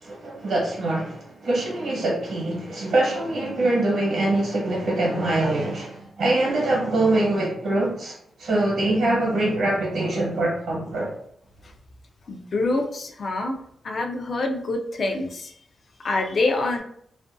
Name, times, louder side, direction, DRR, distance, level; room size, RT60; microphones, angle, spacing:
voice 1, 0.0-8.1 8.4-11.1, right 2 dB, 85° right, -5 dB, 0.9 m, -24 dB
voice 2, 12.3-15.5 16.0-16.8, left 2 dB, 55° left, 3 dB, 0.4 m, -26 dB
2.5 x 2.2 x 2.5 m, 0.66 s
cardioid pair, 85°, 0 cm